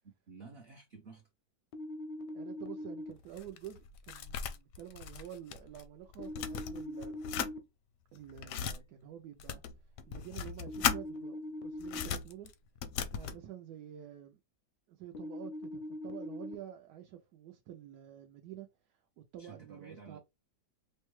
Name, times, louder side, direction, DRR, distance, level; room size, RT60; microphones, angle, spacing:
voice 1, 0.3-1.3 19.4-20.2, right 4 dB, 55° right, 0.7 m, -52 dB
sound 1, 1.7-3.1 6.2-7.6 10.7-12.1 15.2-16.5, left 1 dB, 90° left, 1.2 m, -42 dB
voice 2, 2.3-7.2 8.1-9.6 10.1-12.5 13.1-14.4 14.9-20.2, right 11 dB, 75° right, 1.1 m, -49 dB
sound 2, 3.1-5.9 6.1-7.5 8.1-8.8 9.4-11.0 11.8-13.4, left 8 dB, 70° left, 0.8 m, -37 dB
5.2 x 2.2 x 3.1 m
omnidirectional pair, 1.8 m